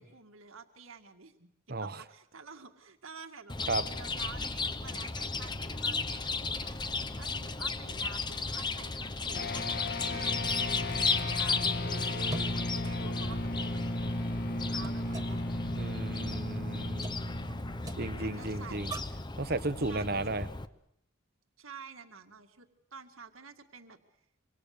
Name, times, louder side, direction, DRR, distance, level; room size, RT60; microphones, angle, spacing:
voice 1, 0.0-6.8 7.2-9.6 10.0-15.4 17.2-19.0 19.9-20.4 21.6-24.0, right 4 dB, 90° right, 5 dB, 2.1 m, -50 dB
Chirp tweet, 3.5-20.7, left 4 dB, 20° left, 0.9 m, -35 dB
sound 1, 9.3-19.1, left 1 dB, 50° left, 1.9 m, -36 dB
sound 2, 14.5-19.3, right 2 dB, 20° right, 1.7 m, -48 dB
voice 2, 15.7-17.2 18.0-18.9 19.4-20.4, right 2 dB, 50° right, 12 dB, 1.2 m, -34 dB
26.5 x 25.5 x 6.7 m, 0.72 s
head